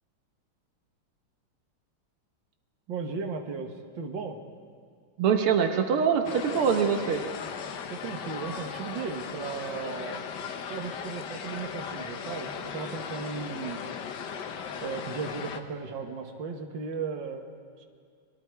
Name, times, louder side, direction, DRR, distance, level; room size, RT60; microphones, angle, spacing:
voice 1, 2.9-4.4 7.9-10.4 10.7-13.8 14.8-17.5 17.8-17.9, right 5 dB, 60° right, 4 dB, 2.2 m, -36 dB
voice 2, 5.2-7.2, right 7 dB, 90° right, 5 dB, 2.1 m, -24 dB
sound 1, 6.2-15.6, left 6 dB, 60° left, 1.5 m, -37 dB
29.5 x 22.0 x 4.7 m, 2.1 s
omnidirectional pair, 2.3 m